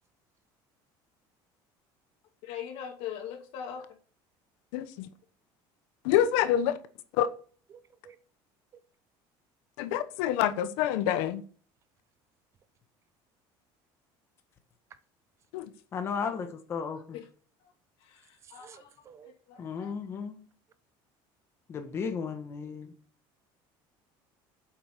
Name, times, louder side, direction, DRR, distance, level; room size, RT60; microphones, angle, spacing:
voice 1, 2.4-3.8 17.1-17.2 18.0-18.9 19.2-19.9, left 9 dB, 60° left, 2.4 m, -41 dB
voice 2, 4.7-5.1 6.0-6.7 7.2-7.3 9.8-11.4 15.5-15.7, left 11 dB, 85° left, 1.1 m, -26 dB
voice 3, 7.7-8.2 18.4-19.3, right 7 dB, 25° right, 0.7 m, -53 dB
voice 4, 15.9-17.2 19.6-20.4 21.7-22.9, left 6 dB, 25° left, 1.3 m, -34 dB
9.1 x 7.9 x 6.7 m
cardioid pair, 180°, 10 cm